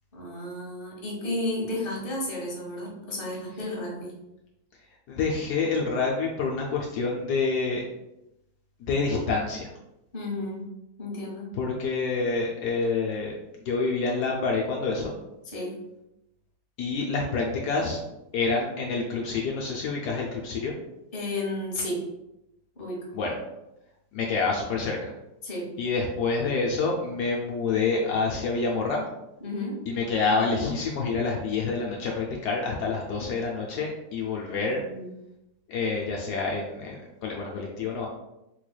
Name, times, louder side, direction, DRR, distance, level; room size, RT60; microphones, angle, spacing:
voice 1, 0.1-4.1 10.1-10.7 11.0-11.5 15.4-15.8 21.1-22.0 22.8-23.0 25.4-25.7 29.4-29.8 34.6-35.1, left 1 dB, 35° left, -3 dB, 0.9 m, -32 dB
voice 2, 5.1-7.8 8.8-9.7 11.5-13.3 13.7-15.1 16.8-18.0 18.3-20.7 23.1-23.3 24.1-25.1 25.8-29.1 29.9-34.8 35.7-38.1, left 4 dB, 85° left, -1 dB, 0.8 m, -27 dB
3.9 x 3.2 x 2.2 m, 0.89 s
omnidirectional pair, 2.3 m